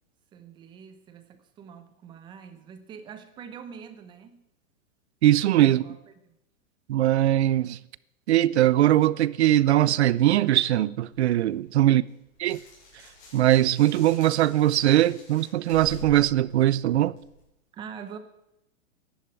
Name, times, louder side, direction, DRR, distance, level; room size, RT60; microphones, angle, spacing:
voice 1, 0.3-4.4 5.5-6.0 6.2-6.3 17.7-18.2, right 7 dB, 10° right, 0.7 m, -44 dB
voice 2, 5.2-5.8 6.9-7.8 8.3-12.0 12.4-12.6 13.3-17.1, right 13 dB, 50° right, 0.6 m, -21 dB
sound 1, 11.1-17.4, left 1 dB, 35° left, 7.8 m, -47 dB
12.0 x 11.5 x 9.2 m
hypercardioid pair, 160°, 42 cm